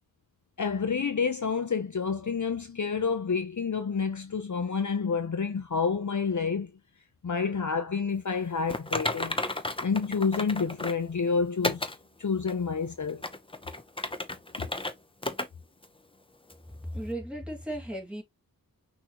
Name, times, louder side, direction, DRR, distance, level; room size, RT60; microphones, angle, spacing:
voice 1, 0.6-6.7 7.2-9.4 9.8-11.9 12.2-13.2 14.6-14.7, left 5 dB, 55° left, 0.7 m, -29 dB
Typing, 8.7-11.0 11.6-12.0 12.5-12.6 13.1-14.9 15.2-15.5 15.8-15.9 16.5-16.6, left 2 dB, 15° left, 0.7 m, -32 dB
voice 2, 16.8-18.2, right 1 dB, 5° right, 2.3 m, -35 dB
6.1 x 2.9 x 3.0 m
wide cardioid pair, 65°, 36 cm